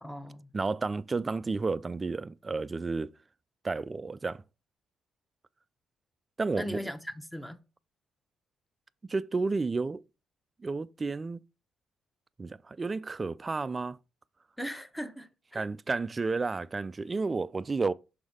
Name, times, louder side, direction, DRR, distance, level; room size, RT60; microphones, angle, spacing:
voice 1, 0.0-0.5 6.5-7.6 14.6-15.7, equal, 5° left, 0.9 m, -39 dB
voice 2, 0.5-3.1 3.6-4.4 6.4-6.8 9.1-10.0 10.6-11.4 12.4-14.0 15.5-17.9, right 3 dB, 30° right, 0.4 m, -31 dB
6.2 x 3.9 x 4.8 m
cardioid pair, 90°, 0 cm